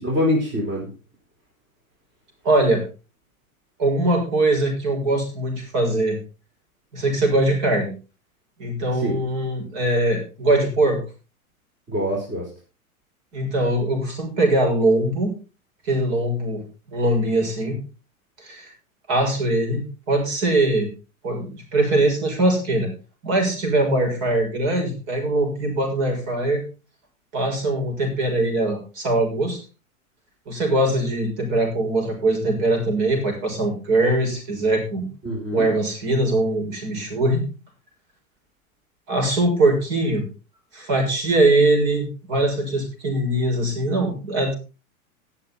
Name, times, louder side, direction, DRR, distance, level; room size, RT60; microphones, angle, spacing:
voice 1, 0.0-0.9 8.9-9.2 11.9-12.5 35.2-35.7, left 1 dB, 25° right, -1 dB, 4.5 m, -24 dB
voice 2, 2.4-2.8 3.8-6.2 6.9-7.9 8.6-11.0 13.3-15.3 15.8-16.6 16.9-17.8 18.4-18.7 19.1-20.9 21.2-22.9 23.2-26.6 27.3-29.6 30.5-35.1 35.5-37.4 39.1-40.2 40.7-44.6, right 2 dB, 50° right, 2 dB, 6.8 m, -21 dB
18.5 x 7.2 x 4.1 m, 0.33 s
hypercardioid pair, 105°, 43 cm